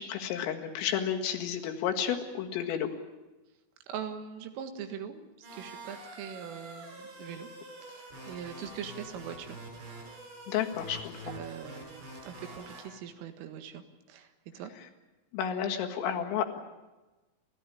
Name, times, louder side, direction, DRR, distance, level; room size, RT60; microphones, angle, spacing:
voice 1, 0.0-2.9 10.5-11.1 15.3-16.6, left 8 dB, 80° left, 4 dB, 4.4 m, -31 dB
voice 2, 3.9-7.5 7.8-9.6 11.3-14.3 14.5-14.7, right 8 dB, 80° right, 8 dB, 4.3 m, -42 dB
sound 1, 5.4-12.8, right 1 dB, 60° right, 9.5 m, -46 dB
29.0 x 14.0 x 10.0 m, 1.1 s
omnidirectional pair, 5.8 m